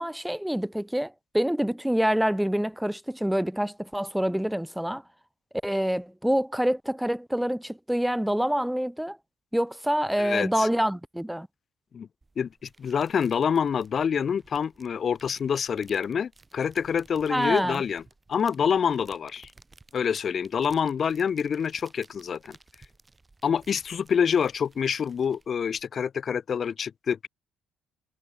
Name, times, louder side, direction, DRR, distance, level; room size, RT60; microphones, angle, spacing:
voice 1, 0.0-5.0 5.6-9.2 9.5-11.5 17.3-17.8, equal, 5° right, 0.6 m, -26 dB
voice 2, 10.2-10.7 11.9-12.1 12.4-18.0 18.3-19.5 19.9-22.6 23.4-27.3, left 7 dB, 45° left, 0.6 m, -27 dB
sound 1, 12.2-25.8, right 3 dB, 20° right, 3.7 m, -57 dB
cardioid pair, 105°, 0 cm